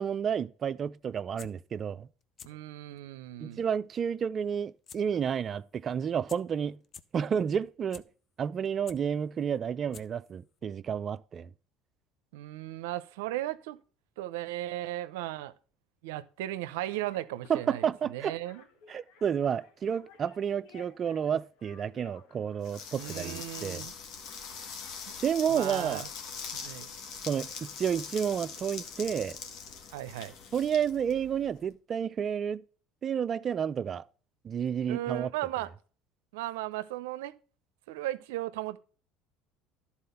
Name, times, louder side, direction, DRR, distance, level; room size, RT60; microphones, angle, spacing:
voice 1, 0.0-2.1 3.4-6.8 7.1-8.0 8.4-11.5 17.5-18.4 18.9-23.9 25.2-26.0 27.3-29.4 30.5-32.6 33.0-34.0 34.4-35.3, right 8 dB, 40° right, 0.4 m, -31 dB
sound 1, 1.2-1.5 2.2-2.5 2.9-3.0 4.9-5.0 5.3-5.4 6.0-6.1 6.3-6.4 6.8-7.0 7.6-8.0 8.5-9.0 9.6-9.7 9.9-10.3 10.6-10.7, left 7 dB, 40° left, 0.6 m, -47 dB
voice 2, 2.5-3.6 12.3-13.8 14.2-15.5 16.0-18.6 22.9-23.9 25.1-25.2 25.5-26.1 26.5-26.9 29.9-30.3 34.9-35.7 36.3-37.3 37.9-38.8, right 15 dB, 85° right, 0.5 m, -36 dB
sound 2, 16.9-23.2, left 6 dB, 75° left, 1.4 m, -57 dB
sound 3, 22.6-31.6, left 6 dB, 60° left, 1.7 m, -42 dB
11.5 x 4.2 x 5.5 m
supercardioid pair, 95°, 0 cm